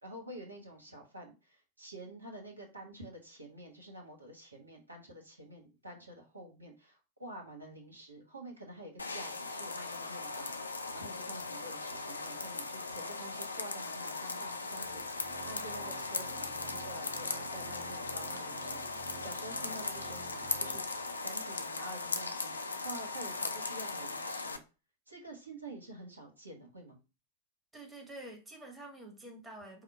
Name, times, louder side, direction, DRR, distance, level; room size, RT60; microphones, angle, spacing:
voice 1, 0.0-20.9 21.2-22.6 22.8-24.6 25.1-27.0, right 1 dB, 80° right, 1.2 m, -48 dB
sound 1, 9.0-24.6, left 3 dB, 80° left, 0.4 m, -38 dB
Organ, 14.7-21.3, right 6 dB, 60° right, 0.8 m, -51 dB
voice 2, 27.7-29.8, right 1 dB, 10° right, 1.1 m, -48 dB
4.9 x 2.1 x 4.4 m
figure-of-eight pair, 90°, 0 cm